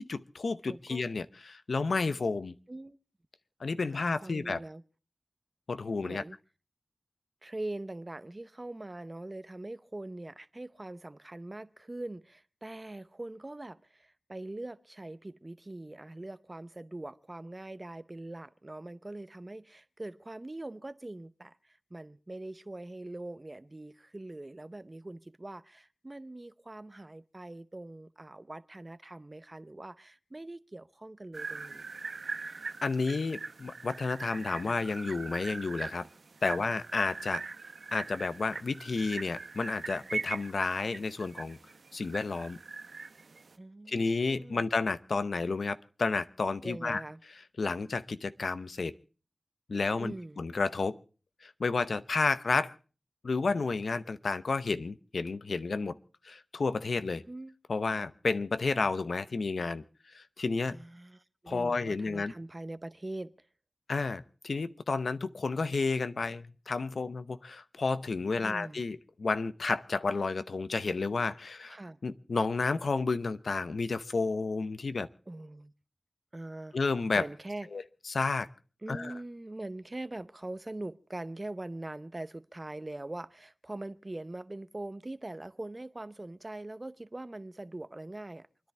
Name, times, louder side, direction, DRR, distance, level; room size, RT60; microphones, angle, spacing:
voice 1, 0.0-2.5 3.6-4.6 5.7-6.2 32.8-36.1 36.4-37.4 37.9-41.6 41.9-42.6 43.9-47.0 47.6-48.9 49.7-51.0 51.4-52.7 53.2-56.0 56.2-57.2 57.7-59.8 60.1-60.8 61.5-62.3 63.9-71.8 72.0-75.1 76.7-77.2 77.7-78.5 78.9-79.1, left 4 dB, 80° left, 0.7 m, -31 dB
voice 2, 0.7-1.0 2.7-3.0 3.8-4.8 6.0-6.4 7.4-31.9 36.4-36.7 43.6-44.6 46.6-47.2 50.0-50.4 57.3-57.5 60.7-63.3 68.4-68.8 71.7-72.0 75.3-75.7 76.3-76.8 77.2-77.7 78.8-88.7, right 2 dB, 35° right, 0.7 m, -42 dB
sound 1, 31.3-43.5, right 4 dB, 80° right, 0.8 m, -41 dB
28.5 x 10.5 x 3.5 m
cardioid pair, 40°, 0 cm